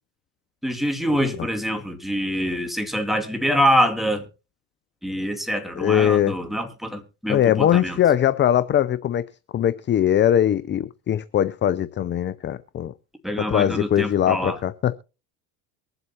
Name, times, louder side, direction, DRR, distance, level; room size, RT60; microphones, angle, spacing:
voice 1, 0.6-4.2 5.0-8.0 13.2-14.6, equal, ahead, 2.4 m, -25 dB
voice 2, 5.8-6.4 7.3-9.2 9.5-12.9 13.4-15.0, left 10 dB, 25° left, 0.5 m, -21 dB
23.5 x 7.9 x 2.9 m
supercardioid pair, 95°, 43 cm